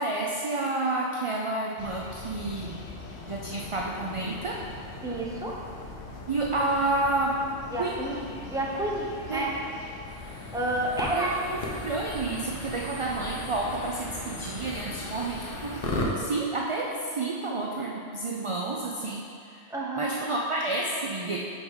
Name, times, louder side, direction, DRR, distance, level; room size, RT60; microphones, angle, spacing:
voice 1, 0.0-2.8 3.3-4.6 6.3-7.4 7.7-8.0 9.3-9.4 11.1-11.3 11.8-15.9 16.2-19.6 19.9-21.4, right 2 dB, 45° right, -2 dB, 0.4 m, -30 dB
sound 1, 1.8-15.9, left 3 dB, 85° left, 1.1 m, -42 dB
voice 2, 5.0-5.6 7.7-9.6 10.5-11.4 19.7-20.2, right 1 dB, 5° right, -4 dB, 0.7 m, -30 dB
sound 2, 10.1-16.1, left 2 dB, 60° left, 1.0 m, -37 dB
5.3 x 4.6 x 5.5 m, 2.4 s
omnidirectional pair, 1.1 m